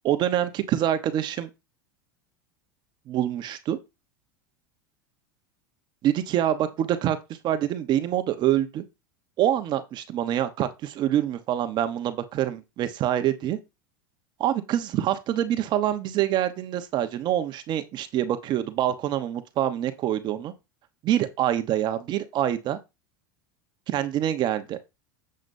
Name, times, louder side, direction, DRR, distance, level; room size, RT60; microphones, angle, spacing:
voice 1, 0.0-1.5 3.1-3.8 6.0-7.2 7.4-8.8 9.4-9.8 10.1-13.6 14.4-20.5 21.0-22.8 23.9-24.8, right 11 dB, 45° right, 1.0 m, -25 dB
7.7 x 7.4 x 2.7 m
supercardioid pair, 110°, 11 cm